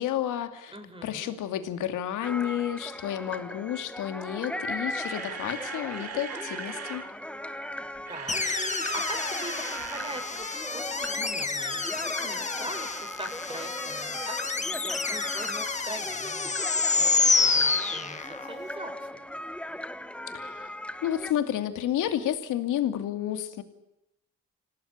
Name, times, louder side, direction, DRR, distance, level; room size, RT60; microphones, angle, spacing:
voice 1, 0.0-0.7 1.0-7.0 20.3-20.7 21.0-23.6, left 11 dB, 85° left, 9 dB, 2.6 m, -31 dB
voice 2, 0.7-1.3 8.1-19.2, right 1 dB, 15° right, 6 dB, 6.5 m, -42 dB
sound 1, 2.2-21.3, left 1 dB, 5° left, 1.2 m, -38 dB
Camera, 4.7-7.1 7.9-10.2 10.4-10.6 11.0-11.1, right 7 dB, 55° right, 2.8 m, -40 dB
sound 2, 8.3-18.6, left 4 dB, 25° left, 1.8 m, -28 dB
27.0 x 18.5 x 8.6 m, 0.88 s
cardioid pair, 90°, 30 cm